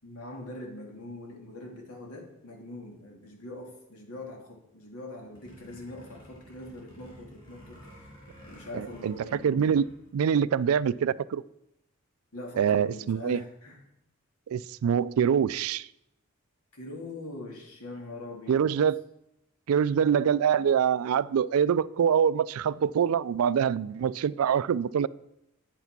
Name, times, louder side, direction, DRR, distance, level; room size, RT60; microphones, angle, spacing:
voice 1, 0.0-8.1 8.4-9.7 12.3-13.8 16.7-18.7, left 2 dB, 85° left, 1 dB, 2.6 m, -42 dB
sound 1, 5.2-10.1, equal, 20° left, 4.3 m, -52 dB
voice 2, 8.7-9.2 9.4-9.8 10.1-11.4 12.6-13.4 14.5-15.9 18.5-19.0 19.7-25.1, right 8 dB, 75° right, 20 dB, 0.3 m, -25 dB
8.9 x 8.2 x 6.0 m, 0.83 s
head